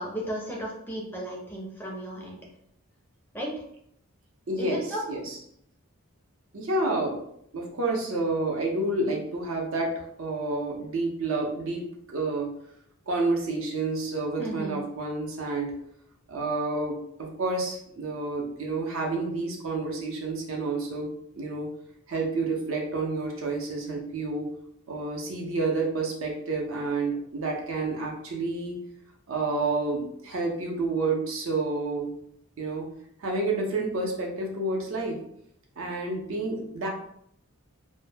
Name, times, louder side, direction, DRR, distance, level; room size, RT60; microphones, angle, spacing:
voice 1, 0.0-2.4 3.3-3.5 4.6-5.0 14.4-14.7, right 1 dB, 10° left, -2 dB, 0.4 m, -34 dB
voice 2, 4.5-5.4 6.5-7.2 7.5-12.5 13.1-15.7 16.3-21.7 22.1-24.5 24.9-28.8 29.3-32.1 32.6-32.8 33.2-35.2 35.8-36.9, right 3 dB, 65° right, -1 dB, 0.6 m, -29 dB
2.1 x 2.0 x 3.2 m, 0.70 s
head